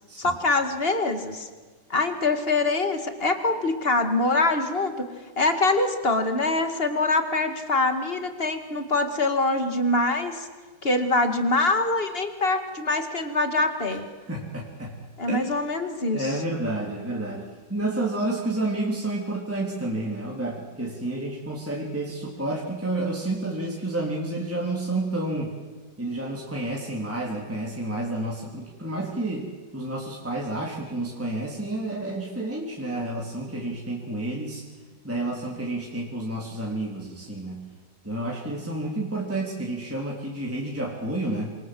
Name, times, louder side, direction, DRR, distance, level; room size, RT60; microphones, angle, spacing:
voice 1, 0.2-1.5 1.9-4.9 5.4-10.5 10.8-14.1 15.2-16.4, left 2 dB, 25° left, 7 dB, 2.3 m, -24 dB
voice 2, 14.3-15.0 15.3-15.5 16.1-25.5 26.0-34.6 35.0-37.7 38.0-41.5, right 2 dB, 5° right, -3 dB, 3.3 m, -30 dB
28.0 x 26.5 x 7.8 m, 1.4 s
omnidirectional pair, 2.4 m